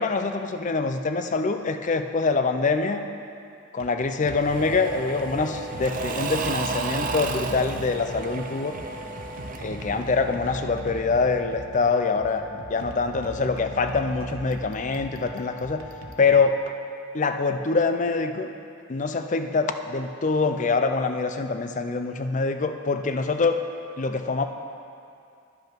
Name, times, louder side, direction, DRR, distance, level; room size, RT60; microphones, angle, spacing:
voice 1, 0.0-3.0 3.7-8.7 9.6-15.8 16.2-16.6 17.1-18.5 18.9-23.6 24.0-24.5, left 4 dB, 40° left, 7 dB, 0.5 m, -25 dB
sound 1, 3.7-16.9, equal, 75° right, 0.8 m, -40 dB
Engine / Mechanisms / Drill, 4.3-10.9, right 4 dB, 40° right, 0.5 m, -33 dB
10.5 x 5.4 x 6.0 m, 2.5 s
head